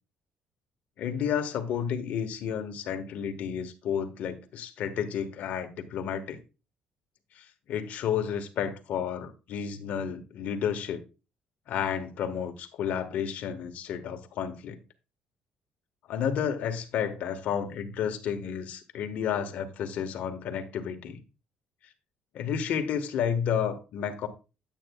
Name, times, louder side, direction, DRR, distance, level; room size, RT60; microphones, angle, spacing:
voice 1, 1.0-6.4 7.4-11.0 11.7-14.8 16.1-21.2 22.3-24.3, left 8 dB, 65° left, 1.4 m, -31 dB
9.2 x 9.0 x 2.3 m
cardioid pair, 135°, 3 cm